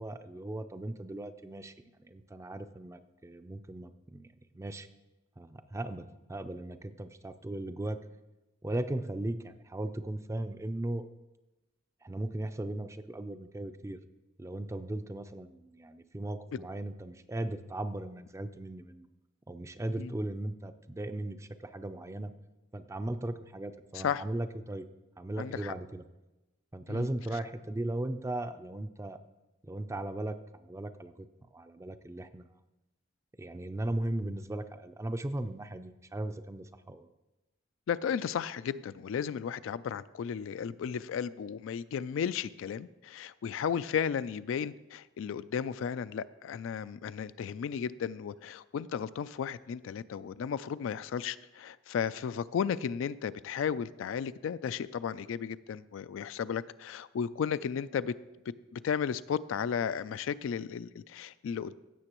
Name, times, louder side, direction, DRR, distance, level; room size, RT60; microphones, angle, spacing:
voice 1, 0.0-4.9 5.4-8.0 8.6-11.1 12.0-14.0 14.4-19.1 19.5-22.3 22.7-24.9 25.2-26.0 26.7-29.2 29.6-31.3 31.5-32.5 33.4-37.1, right 1 dB, 15° right, 11 dB, 0.4 m, -37 dB
voice 2, 25.4-25.7 26.9-27.1 37.9-58.1 58.7-61.8, left 7 dB, 70° left, 16 dB, 0.3 m, -34 dB
16.0 x 6.9 x 3.0 m, 1.0 s
head